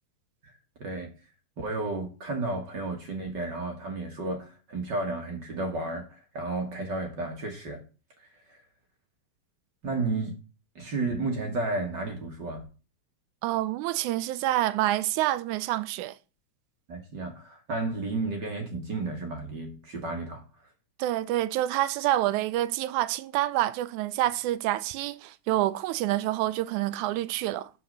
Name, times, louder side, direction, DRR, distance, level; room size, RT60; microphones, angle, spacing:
voice 1, 0.4-1.1 1.6-7.8 8.2-8.6 9.8-10.4 10.8-12.7 16.9-20.7, right 3 dB, 45° right, 1.7 m, -33 dB
voice 2, 13.4-16.2 21.0-27.7, right 14 dB, 85° right, 2.0 m, -27 dB
8.2 x 5.1 x 6.6 m
omnidirectional pair, 3.4 m